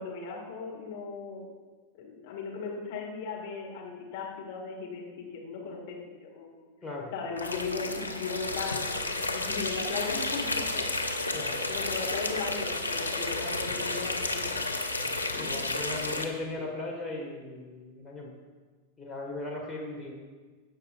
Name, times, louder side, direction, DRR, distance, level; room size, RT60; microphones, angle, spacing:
voice 1, 0.0-1.5 2.0-6.0 6.3-6.7 7.1-10.9 11.7-14.6 15.3-15.6, left 4 dB, 50° left, -2 dB, 2.1 m, -37 dB
voice 2, 6.8-7.1 11.3-11.6 15.0-18.3 19.0-20.1, left 2 dB, 10° left, -3 dB, 1.7 m, -38 dB
sound 1, 7.4-16.2, left 2 dB, 85° left, 0.6 m, -32 dB
16.0 x 5.5 x 2.6 m, 1.4 s
figure-of-eight pair, 90°, 0 cm